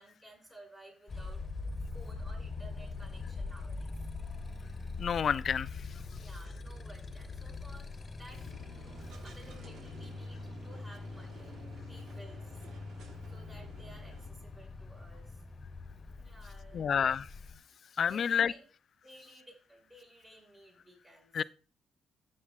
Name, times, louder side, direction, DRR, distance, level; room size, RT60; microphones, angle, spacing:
voice 1, 0.0-1.4 1.9-3.9 6.0-8.6 9.2-11.6 11.9-12.6 13.3-15.4 16.1-16.9 18.0-18.6 19.0-21.5, right 1 dB, 25° right, 5.7 m, -55 dB
Motorcycle, 1.1-17.6, left 3 dB, 30° left, 1.3 m, -43 dB
voice 2, 5.0-5.7 16.7-17.3 18.0-18.5 21.3-21.4, left 7 dB, 55° left, 0.4 m, -28 dB
sound 1, 8.3-14.3, right 5 dB, 75° right, 1.3 m, -54 dB
14.0 x 8.5 x 2.3 m
cardioid pair, 90°, 0 cm